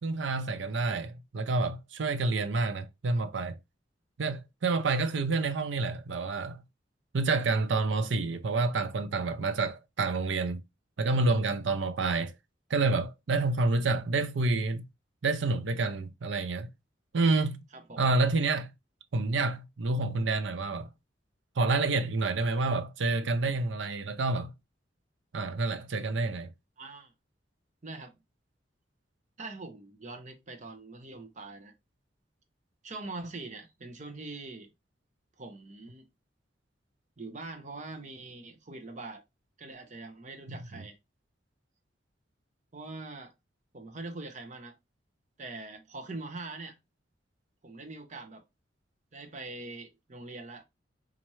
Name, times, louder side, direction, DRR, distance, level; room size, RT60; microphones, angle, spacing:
voice 1, 0.0-3.6 4.2-6.6 7.1-10.6 11.0-12.3 12.7-14.8 15.2-16.7 17.1-17.6 18.0-18.7 19.1-20.9 21.6-24.5 25.3-26.5 40.5-40.8, right 3 dB, 80° right, 0.6 m, -28 dB
voice 2, 17.7-18.0 26.8-27.1 27.8-28.1 29.4-31.7 32.8-34.7 35.4-36.1 37.2-39.2 39.6-41.0 42.7-43.3 43.7-44.8 45.4-46.8 47.6-48.4 49.1-50.6, right 3 dB, 40° right, 0.7 m, -43 dB
4.2 x 2.5 x 3.0 m
head